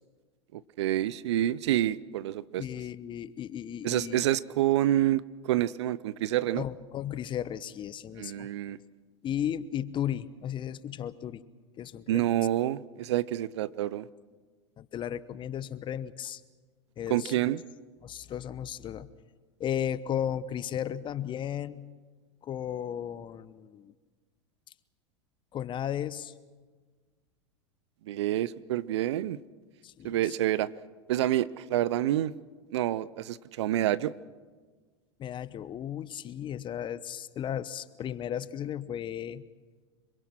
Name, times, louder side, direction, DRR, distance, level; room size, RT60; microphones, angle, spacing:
voice 1, 0.5-2.6 3.8-6.6 8.2-8.8 12.1-14.1 17.1-17.6 28.1-29.4 30.0-30.7 31.1-32.3 32.7-34.1, right 13 dB, 70° right, 20 dB, 0.7 m, -28 dB
voice 2, 2.6-4.2 6.6-8.5 9.2-11.4 11.8-12.3 14.8-16.4 17.0-17.3 18.0-19.1 19.6-21.9 22.4-23.9 25.5-26.3 29.8-30.3 35.2-39.4, left 10 dB, 35° left, 16 dB, 1.0 m, -35 dB
26.0 x 23.0 x 6.1 m, 1.4 s
hypercardioid pair, 90°, 15 cm